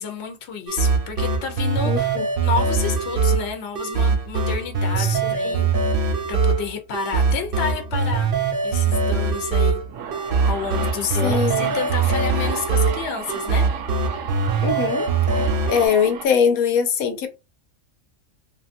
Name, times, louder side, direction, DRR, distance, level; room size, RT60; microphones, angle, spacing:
voice 1, 0.0-5.7 6.3-8.3 8.6-9.8 10.5-13.7, left 6 dB, 60° left, 0.9 m, -30 dB
sound 1, 0.7-15.9, right 4 dB, 50° right, 0.7 m, -22 dB
voice 2, 1.8-2.3 5.0-5.7 11.2-11.7 14.6-15.1 15.7-17.3, left 7 dB, 85° left, 1.1 m, -22 dB
sound 2, 9.8-16.3, right 7 dB, 75° right, 1.0 m, -34 dB
3.6 x 2.4 x 2.5 m
omnidirectional pair, 1.5 m